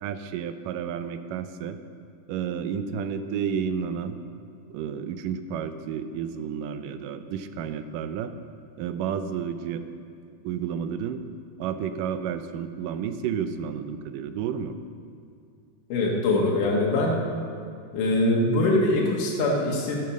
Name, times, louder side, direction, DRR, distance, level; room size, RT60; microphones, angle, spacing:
voice 1, 0.0-1.8 2.3-4.2 4.7-8.3 8.8-9.8 10.4-11.2 11.6-14.8, right 7 dB, 85° right, 10 dB, 2.3 m, -31 dB
voice 2, 15.9-17.2 17.9-20.0, left 2 dB, 75° left, -3 dB, 2.9 m, -23 dB
12.5 x 8.8 x 6.4 m, 2.4 s
omnidirectional pair, 3.8 m